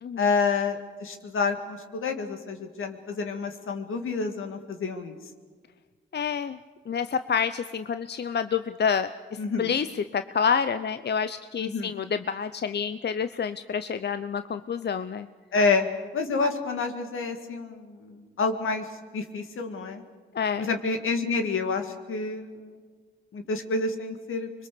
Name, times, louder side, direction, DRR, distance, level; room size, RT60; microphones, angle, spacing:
voice 1, 0.2-5.2 9.4-9.7 11.6-11.9 15.5-15.9 16.1-18.9 19.1-20.0 20.6-22.8 23.3-24.5, left 4 dB, 80° left, 6 dB, 2.1 m, -28 dB
voice 2, 6.1-6.6 6.9-9.1 9.6-9.9 10.1-15.3 20.3-20.7, left 6 dB, 55° left, 11 dB, 0.7 m, -28 dB
25.5 x 21.5 x 6.9 m, 1.5 s
supercardioid pair, 45°, 21 cm